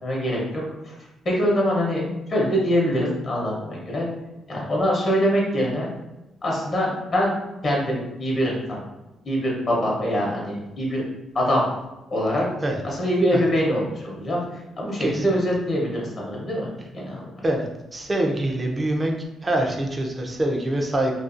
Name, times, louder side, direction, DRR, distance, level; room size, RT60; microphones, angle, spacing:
voice 1, 0.0-0.9 1.2-2.0 2.3-4.1 4.5-5.9 6.4-7.3 7.6-8.8 9.2-11.0 11.3-11.6 12.1-12.4 12.8-16.7 16.9-17.2, equal, 45° left, -3 dB, 0.8 m, -24 dB
voice 2, 17.9-19.1 19.4-21.1, right 1 dB, 25° right, 1 dB, 0.5 m, -24 dB
2.4 x 2.3 x 2.5 m, 0.99 s
cardioid pair, 90°, 0 cm